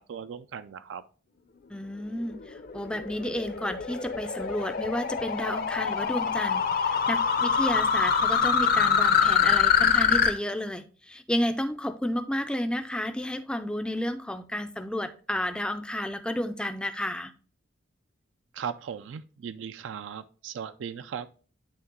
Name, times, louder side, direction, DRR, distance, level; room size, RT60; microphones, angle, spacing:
voice 1, 0.1-1.0 18.5-21.3, right 7 dB, 75° right, 0.3 m, -37 dB
voice 2, 1.7-17.3, left 1 dB, 5° left, 0.4 m, -31 dB
sound 1, 2.3-10.3, left 6 dB, 50° left, 0.6 m, -24 dB
8.5 x 3.2 x 3.6 m
head